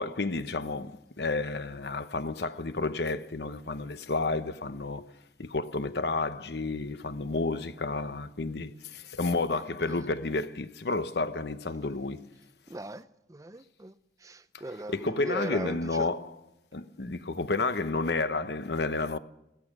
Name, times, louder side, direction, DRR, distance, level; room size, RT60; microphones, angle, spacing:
voice 1, 0.0-5.1 5.4-12.3 14.7-16.4 16.7-19.2, left 3 dB, 70° left, 0.9 m, -31 dB
voice 2, 9.5-10.0 12.7-13.9 14.2-16.1, right 2 dB, 20° right, 0.5 m, -39 dB
16.0 x 14.0 x 6.1 m
head